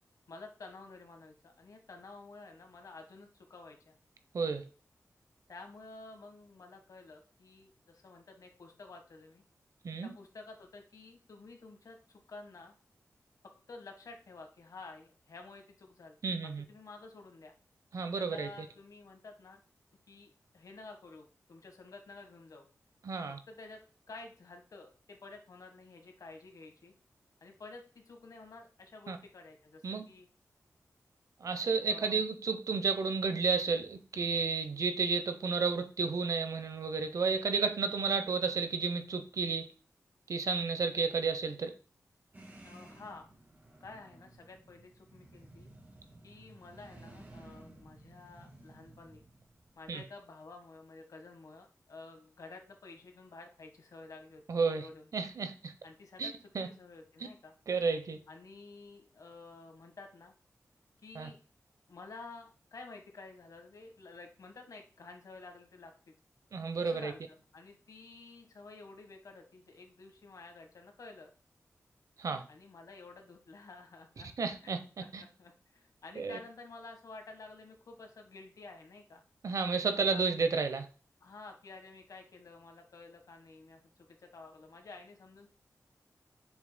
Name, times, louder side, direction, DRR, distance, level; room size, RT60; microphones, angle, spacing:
voice 1, 0.3-4.0 5.5-9.4 10.0-12.7 13.4-16.2 16.7-17.5 18.2-19.6 20.1-22.7 23.5-23.8 24.1-26.9 27.4-30.3 31.8-32.3 42.6-43.3 43.8-45.7 46.2-49.3 49.7-54.4 54.8-55.1 55.8-56.3 56.7-57.5 58.3-60.3 61.0-61.4 61.9-65.9 66.8-71.3 72.5-74.3 74.6-79.2 79.9-80.3 81.2-85.5, left 3 dB, 75° left, 4 dB, 1.5 m, -51 dB
voice 2, 4.3-4.6 9.8-10.1 16.2-16.6 17.9-18.7 23.0-23.4 29.1-29.2 29.8-30.0 31.4-39.7 40.3-41.7 49.9-50.0 54.5-54.9 55.1-55.7 56.2-56.7 57.7-58.2 61.1-61.3 66.5-67.1 72.2-72.4 74.4-74.8 75.1-75.2 76.2-76.4 79.4-80.9, right 4 dB, 70° right, 8 dB, 0.9 m, -32 dB
sound 1, 42.3-49.9, right 2 dB, 30° right, 1.8 m, -55 dB
7.3 x 6.2 x 2.3 m, 0.37 s
wide cardioid pair, 120°, 6 cm